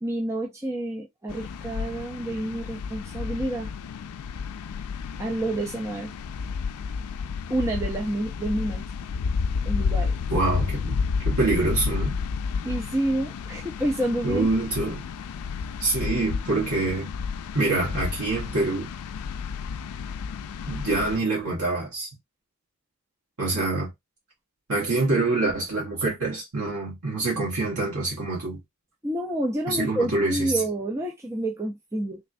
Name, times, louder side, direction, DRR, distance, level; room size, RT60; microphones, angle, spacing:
voice 1, 0.0-3.7 5.2-6.1 7.5-8.8 9.7-10.1 12.6-14.5 29.0-32.2, right 1 dB, 15° right, 0.4 m, -28 dB
sound 1, 1.3-21.2, left 5 dB, 85° left, 0.4 m, -31 dB
voice 2, 10.3-12.2 14.2-15.0 15.8-17.1 17.5-18.9 20.7-22.1 23.4-23.9 24.7-28.6 29.7-30.5, right 2 dB, 80° right, 1.4 m, -25 dB
3.5 x 3.2 x 2.6 m
head